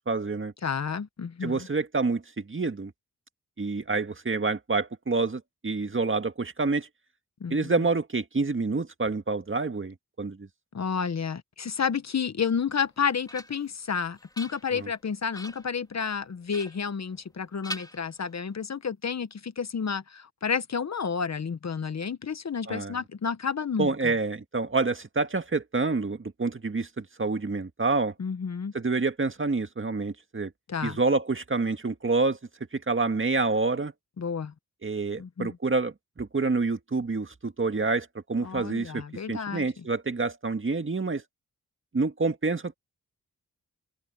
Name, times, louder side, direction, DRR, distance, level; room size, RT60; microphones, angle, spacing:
voice 1, 0.1-0.5 1.4-2.9 3.6-6.9 7.5-10.5 14.7-14.9 22.7-23.0 23.8-28.1 28.7-30.5 30.8-32.4 32.7-33.9 34.8-41.2 41.9-42.7, right 3 dB, 35° right, 1.9 m, -28 dB
voice 2, 0.6-1.7 7.4-7.7 10.7-24.1 28.2-28.7 30.7-31.0 34.2-34.5 35.2-35.6 38.4-39.6, left 6 dB, 50° left, 1.1 m, -31 dB
sound 1, 12.8-13.8 14.2-14.9 15.3-15.8 16.5-17.4 17.6-18.6, left 1 dB, 10° left, 3.6 m, -43 dB
cardioid pair, 55°, 34 cm